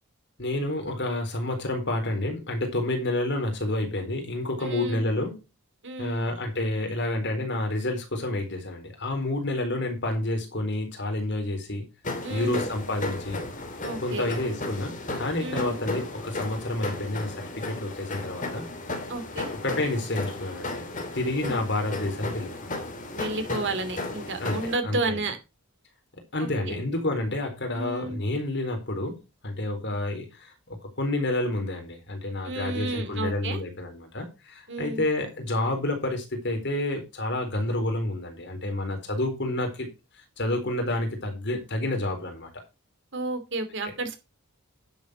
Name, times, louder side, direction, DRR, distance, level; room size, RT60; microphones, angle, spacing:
voice 1, 0.4-5.4 6.0-11.8 12.3-13.4 14.0-18.7 19.5-20.8 21.1-22.8 24.4-25.2 26.3-39.9 40.4-42.5, left 1 dB, 55° left, 4 dB, 4.1 m, -29 dB
voice 2, 4.6-5.1 5.8-6.2 12.2-12.7 13.8-14.3 15.4-15.7 19.1-19.5 21.4-21.5 23.1-25.4 26.4-26.5 27.7-28.2 32.4-33.6 34.7-35.0 43.1-44.2, right 2 dB, 55° right, 8 dB, 2.7 m, -32 dB
sound 1, 12.0-24.8, left 2 dB, 35° left, 2.9 m, -34 dB
10.5 x 7.4 x 5.1 m, 0.27 s
head